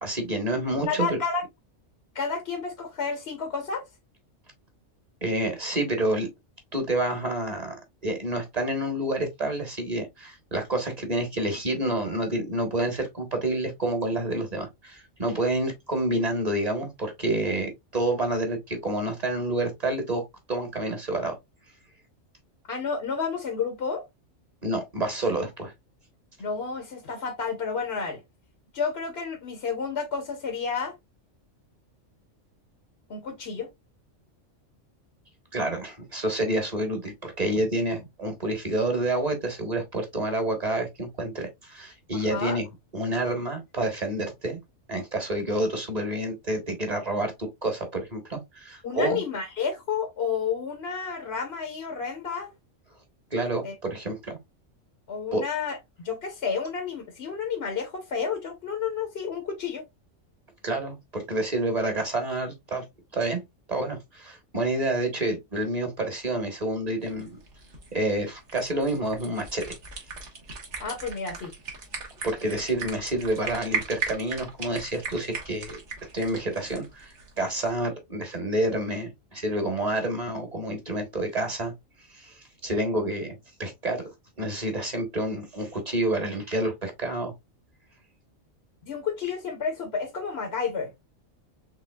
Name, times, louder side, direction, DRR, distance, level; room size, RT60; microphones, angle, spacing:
voice 1, 0.0-1.2 5.2-6.3 6.7-20.2 20.5-21.4 24.6-25.7 35.5-42.7 42.9-44.6 44.9-49.2 53.3-54.4 55.3-55.4 60.6-62.8 63.1-63.4 63.7-67.4 67.9-69.8 72.2-75.8 76.1-81.7 82.1-84.0 84.4-87.3, right 1 dB, 30° right, 1.5 m, -28 dB
voice 2, 0.5-1.4 2.1-3.8 22.7-24.1 26.4-28.2 28.7-30.9 33.1-33.7 42.1-42.6 48.8-52.5 53.6-53.7 55.1-59.8 70.8-71.5 88.9-90.9, left 5 dB, 55° left, 1.1 m, -31 dB
sound 1, 67.0-77.8, right 4 dB, 65° right, 1.8 m, -37 dB
5.6 x 3.5 x 2.3 m
omnidirectional pair, 1.3 m